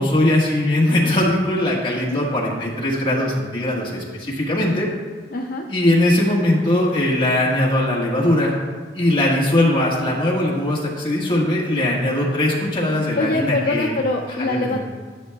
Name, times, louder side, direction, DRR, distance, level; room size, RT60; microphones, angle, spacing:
voice 1, 0.0-4.9 5.7-8.5 8.9-13.9 14.4-14.8, left 1 dB, 25° left, -4 dB, 1.5 m, -20 dB
voice 2, 5.3-5.7 13.2-14.8, left 2 dB, 55° left, 1 dB, 0.5 m, -23 dB
11.0 x 7.7 x 2.3 m, 1.5 s
head